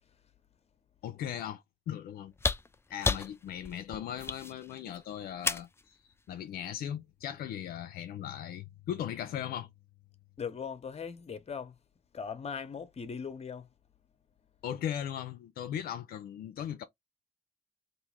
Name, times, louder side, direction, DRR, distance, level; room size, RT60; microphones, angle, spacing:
voice 1, 1.0-2.3 2.9-6.0 6.3-9.7 14.6-16.8, left 10 dB, 85° left, 0.4 m, -38 dB
sound 1, 2.3-5.8 7.2-7.3, left 3 dB, 15° left, 0.3 m, -33 dB
voice 2, 10.4-11.8 12.1-13.7, left 6 dB, 45° left, 0.8 m, -39 dB
2.9 x 2.5 x 3.5 m
cardioid pair, 60°, 15 cm